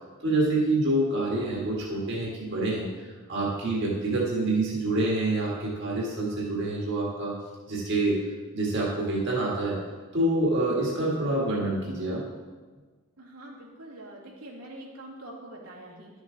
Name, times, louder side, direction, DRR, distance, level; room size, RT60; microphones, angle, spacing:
voice 1, 0.2-7.3 7.7-8.2 8.5-9.8 10.1-12.2, right 2 dB, 50° right, -5 dB, 1.7 m, -27 dB
voice 2, 13.2-16.1, right 1 dB, 85° right, -5 dB, 2.5 m, -44 dB
11.5 x 7.1 x 3.9 m, 1.4 s
head